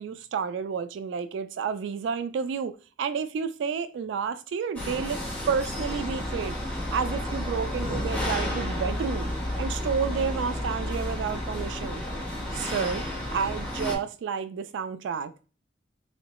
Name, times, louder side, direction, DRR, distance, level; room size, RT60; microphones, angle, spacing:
voice 1, 0.0-2.7 3.0-5.2 5.5-6.6 6.9-9.3 9.6-12.0 12.5-13.0 13.3-15.3, right 6 dB, 75° right, 0.3 m, -30 dB
sound 1, 4.8-14.0, left 1 dB, 10° left, 1.1 m, -31 dB
3.7 x 3.1 x 2.9 m
head